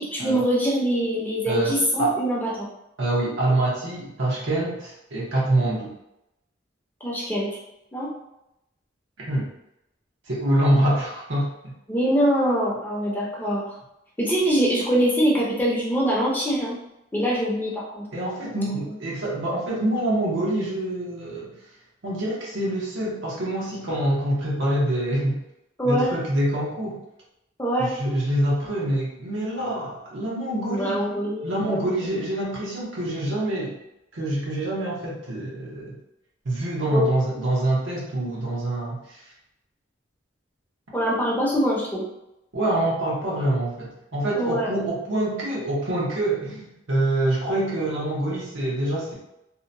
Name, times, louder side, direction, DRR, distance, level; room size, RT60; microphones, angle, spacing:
voice 1, 0.0-2.7 7.0-7.6 7.9-8.1 11.9-13.8 14.2-16.8 17.1-18.1 25.8-26.2 27.6-27.9 30.7-31.9 36.9-37.1 40.9-42.1 44.3-44.7, equal, 10° left, -5 dB, 0.5 m, -23 dB
voice 2, 1.5-2.2 3.0-5.9 9.2-9.5 10.3-11.5 18.1-21.5 22.0-25.4 25.8-27.0 27.8-31.0 31.4-33.8 34.1-36.0 36.4-39.2 42.5-49.1, right 1 dB, 85° right, -5 dB, 0.8 m, -25 dB
2.7 x 2.1 x 2.6 m, 0.87 s
head